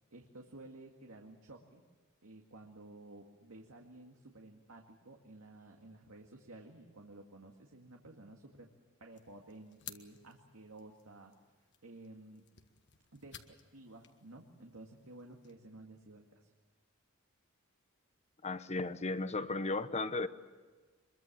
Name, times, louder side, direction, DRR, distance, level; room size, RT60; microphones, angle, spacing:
voice 1, 0.1-1.8 2.2-8.7 9.0-11.3 11.8-12.4 13.1-16.5, right 2 dB, 80° right, 1 dB, 2.1 m, -53 dB
sound 1, 9.1-15.5, left 10 dB, 55° left, 1.6 m, -57 dB
voice 2, 18.4-20.3, left 3 dB, 30° left, 12 dB, 0.9 m, -35 dB
24.5 x 22.5 x 7.5 m, 1.4 s
head